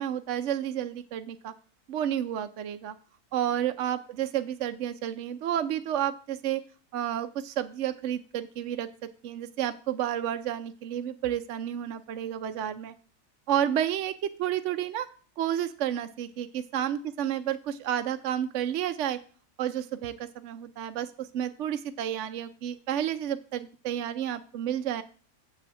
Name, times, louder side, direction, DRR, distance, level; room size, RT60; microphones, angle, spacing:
voice 1, 0.0-1.5 1.9-2.9 3.3-6.6 6.9-8.9 9.2-12.9 13.5-14.1 14.4-15.1 15.4-16.5 16.7-19.2 19.6-25.0, right 10 dB, 65° right, 9 dB, 0.8 m, -31 dB
7.7 x 6.0 x 7.3 m, 0.41 s
omnidirectional pair, 1.6 m